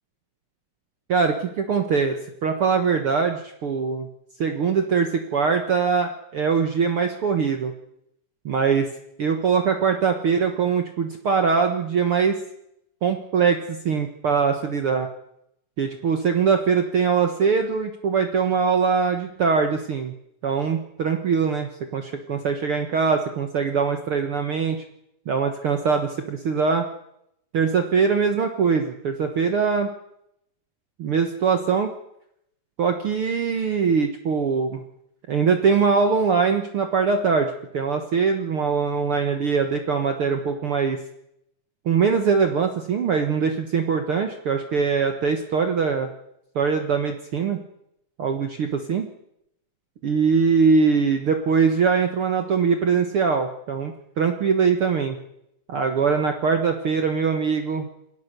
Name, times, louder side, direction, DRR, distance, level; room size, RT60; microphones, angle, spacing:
voice 1, 1.1-2.2 2.4-4.1 4.4-7.7 8.4-8.9 9.2-12.4 13.0-15.1 15.8-20.1 20.4-24.8 25.3-26.8 27.5-29.9 31.0-31.9 32.8-34.8 35.3-41.0 41.8-46.1 46.5-47.6 48.2-49.1 50.0-55.2 55.7-57.9, right 5 dB, 60° right, 6 dB, 1.4 m, -22 dB
27.5 x 17.5 x 6.8 m, 0.79 s
omnidirectional pair, 4.3 m